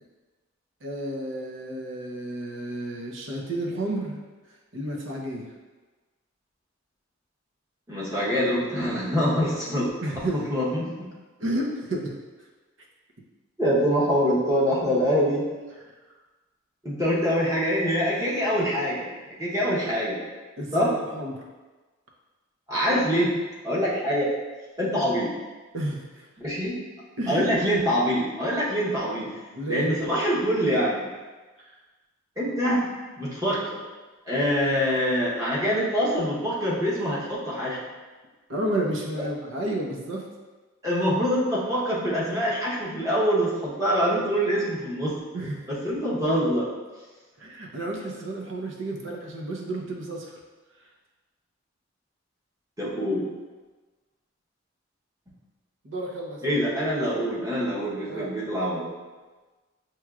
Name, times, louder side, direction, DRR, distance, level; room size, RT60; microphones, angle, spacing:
voice 1, 0.8-4.2 4.7-5.5 10.0-10.5 11.4-12.1 20.6-21.4 25.7-26.2 27.2-27.5 29.5-29.9 38.5-40.2 45.3-45.7 47.4-50.3 55.8-56.4 58.1-58.3, right 1 dB, 70° right, -1 dB, 0.8 m, -31 dB
voice 2, 7.9-9.9 10.3-11.1 13.6-15.5 16.8-19.1 19.4-20.2 20.7-20.9 22.7-23.3 23.6-24.3 24.8-25.3 26.4-26.8 27.3-29.3 29.7-31.1 32.4-32.8 33.2-33.8 34.3-37.8 39.1-39.2 40.8-45.1 45.7-46.7 52.8-53.2 56.4-58.9, equal, 15° right, -8 dB, 1.0 m, -25 dB
6.1 x 3.0 x 2.4 m, 1.3 s
head